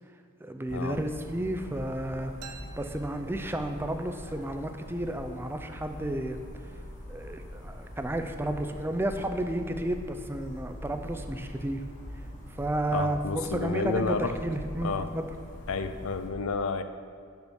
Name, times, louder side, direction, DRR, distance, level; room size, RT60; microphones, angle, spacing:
voice 1, 0.4-6.4 7.1-11.8 12.5-15.3, right 1 dB, 10° right, 6 dB, 0.5 m, -32 dB
sound 1, 0.7-16.3, left 1 dB, 35° left, 1.5 m, -43 dB
sound 2, 2.4-4.1, right 6 dB, 90° right, 0.7 m, -50 dB
voice 2, 12.9-14.4 14.8-15.1 15.7-16.8, left 4 dB, 65° left, 10 dB, 0.5 m, -30 dB
7.0 x 6.1 x 7.0 m, 2.3 s
head